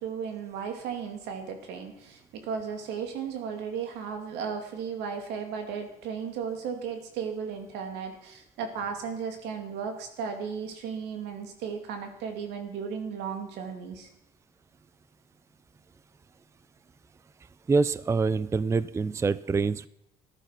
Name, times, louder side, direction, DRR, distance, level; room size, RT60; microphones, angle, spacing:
voice 1, 0.0-14.1, right 6 dB, 90° right, 5 dB, 2.6 m, -35 dB
voice 2, 17.7-19.9, right 4 dB, 15° right, 18 dB, 0.4 m, -25 dB
14.5 x 11.5 x 5.9 m, 0.84 s
cardioid pair, 110°, 17 cm